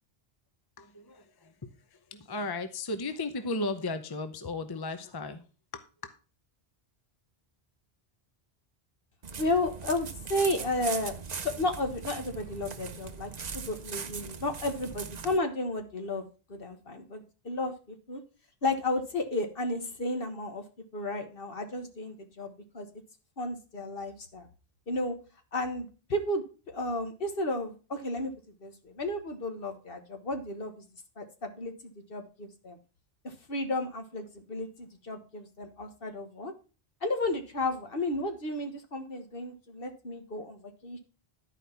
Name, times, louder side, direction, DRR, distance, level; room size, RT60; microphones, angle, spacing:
voice 1, 0.8-5.5 5.7-6.1, left 2 dB, 25° left, 9 dB, 0.7 m, -36 dB
sound 1, 9.2-15.4, right 6 dB, 45° right, 0.8 m, -40 dB
voice 2, 9.4-11.1 11.4-18.2 18.6-20.6 20.9-22.9 23.4-24.5 24.9-25.1 25.5-28.3 28.6-30.8 31.2-32.8 33.2-36.5 37.0-41.0, left 2 dB, 65° left, 6 dB, 1.6 m, -33 dB
11.5 x 4.9 x 5.7 m, 0.35 s
omnidirectional pair, 1.0 m